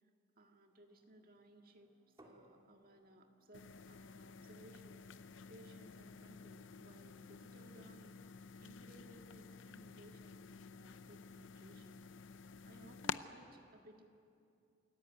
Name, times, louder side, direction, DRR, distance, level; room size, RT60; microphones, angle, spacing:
voice 1, 0.4-1.9 2.2-8.2 8.6-12.0 12.7-14.1, right 1 dB, 50° right, 3 dB, 1.9 m, -61 dB
sound 1, 0.6-9.7, equal, 5° right, 5.7 m, -82 dB
sound 2, 2.2-7.8, right 1 dB, 20° right, 2.8 m, -70 dB
sound 3, 3.5-13.2, left 6 dB, 75° left, 0.6 m, -50 dB
27.0 x 14.0 x 9.3 m, 2.5 s
head